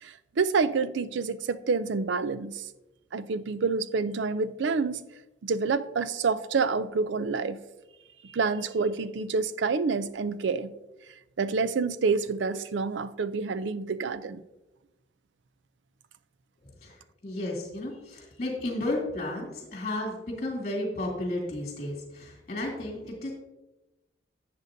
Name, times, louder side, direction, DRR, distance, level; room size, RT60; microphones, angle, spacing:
voice 1, 0.0-2.6 3.1-5.1 5.4-7.6 8.2-10.7 11.4-14.4, right 4 dB, 75° right, 0.5 m, -28 dB
voice 2, 16.8-23.3, left 1 dB, 40° left, 2.7 m, -33 dB
11.5 x 7.8 x 2.7 m
head